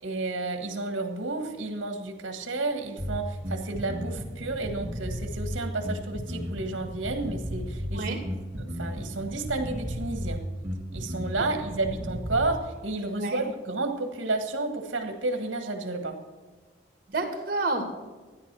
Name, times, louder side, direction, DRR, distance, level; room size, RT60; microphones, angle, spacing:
voice 1, 0.0-8.1 8.6-10.4 10.9-16.2, right 2 dB, 70° right, 6 dB, 1.6 m, -31 dB
Bass guitar, 3.0-12.6, equal, 10° right, 2.9 m, -34 dB
voice 2, 17.1-17.9, right 2 dB, 45° right, 5 dB, 2.3 m, -29 dB
14.0 x 10.0 x 6.1 m, 1.3 s
head